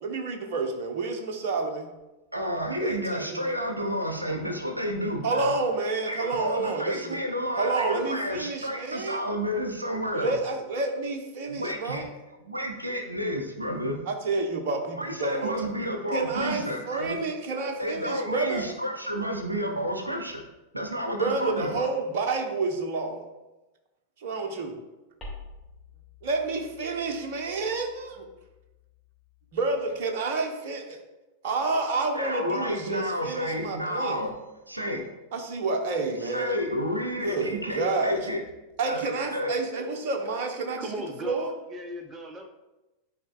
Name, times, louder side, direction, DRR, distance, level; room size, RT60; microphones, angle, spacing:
voice 1, 0.0-1.9 2.8-3.5 5.2-7.2 7.6-9.2 10.1-12.1 14.1-15.5 16.1-18.7 21.2-23.2 24.2-24.7 26.2-28.2 29.5-31.0 31.4-34.2 35.3-36.5 37.2-38.2 38.8-40.9 41.2-41.5, right 3 dB, 50° right, 4 dB, 1.0 m, -29 dB
voice 2, 2.3-5.5 6.1-10.4 11.5-12.0 12.4-14.0 15.0-17.2 17.8-20.4 20.7-21.9 32.1-34.3 34.7-35.0 36.2-38.4 38.9-39.0 39.3-39.5, equal, 85° right, 4 dB, 0.7 m, -30 dB
sound 1, 25.2-30.0, left 2 dB, 10° left, 2.2 m, -49 dB
voice 3, 40.8-42.5, equal, 20° right, 6 dB, 0.7 m, -37 dB
11.0 x 4.4 x 2.4 m, 1.0 s
figure-of-eight pair, 90°, 0 cm